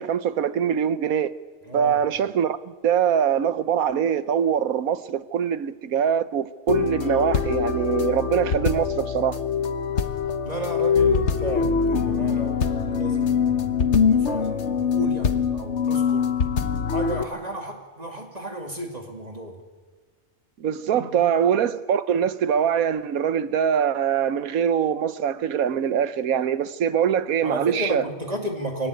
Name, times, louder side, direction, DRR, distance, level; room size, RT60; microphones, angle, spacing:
voice 1, 0.0-1.3 1.7-2.6 2.8-9.4 20.6-28.0, right 8 dB, 85° right, 1.3 m, -23 dB
voice 2, 1.7-2.0 10.4-13.8 14.1-16.3 16.9-19.6 20.9-21.3 27.4-28.9, right 1 dB, 30° right, 2.5 m, -33 dB
sound 1, 6.7-17.2, left 6 dB, 55° left, 1.4 m, -23 dB
22.0 x 18.0 x 9.5 m
omnidirectional pair, 1.5 m